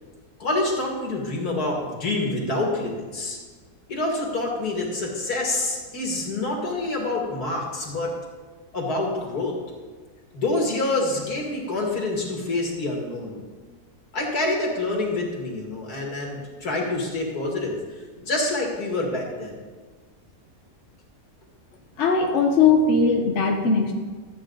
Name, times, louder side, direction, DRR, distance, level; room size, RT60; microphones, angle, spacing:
voice 1, 0.4-3.4 3.9-8.1 8.7-9.6 10.3-13.4 14.1-19.6, left 2 dB, 75° left, -1 dB, 2.5 m, -27 dB
voice 2, 22.0-23.9, left 4 dB, 55° left, 2 dB, 1.1 m, -19 dB
13.0 x 8.4 x 3.9 m, 1.4 s
omnidirectional pair, 1.7 m